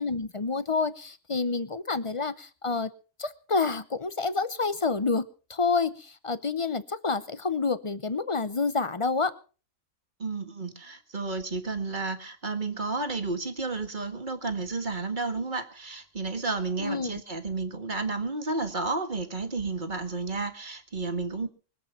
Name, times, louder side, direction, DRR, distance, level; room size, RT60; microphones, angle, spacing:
voice 1, 0.0-2.9 3.2-9.3 16.8-17.2, left 4 dB, 30° left, 14 dB, 0.6 m, -28 dB
voice 2, 10.2-21.5, right 3 dB, 30° right, 7 dB, 1.8 m, -32 dB
24.0 x 8.1 x 5.8 m, 0.38 s
omnidirectional pair, 1.6 m